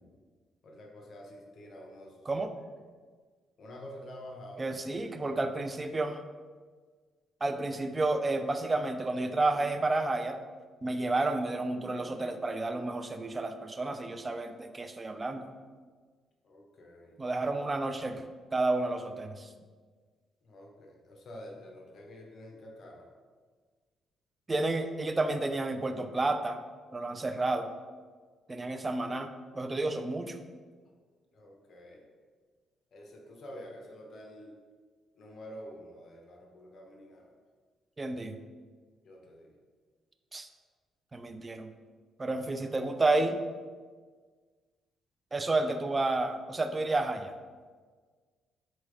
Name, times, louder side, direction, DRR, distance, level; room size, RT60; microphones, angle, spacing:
voice 1, 0.6-2.4 3.6-4.8 5.1-5.4 16.4-17.2 20.4-23.1 31.3-32.1 32.9-34.5 35.1-37.3 39.0-39.5 45.3-45.5, equal, 55° left, 0 dB, 0.8 m, -48 dB
voice 2, 4.6-6.2 7.4-10.4 10.8-15.5 17.2-18.2 18.5-19.5 24.5-26.6 26.9-27.7 28.5-29.3 29.6-30.4 38.0-38.4 40.3-40.5 41.1-41.7 42.2-43.4 45.3-47.3, right 2 dB, 25° right, 8 dB, 0.3 m, -31 dB
4.0 x 3.4 x 3.2 m, 1.5 s
cardioid pair, 90°, 0 cm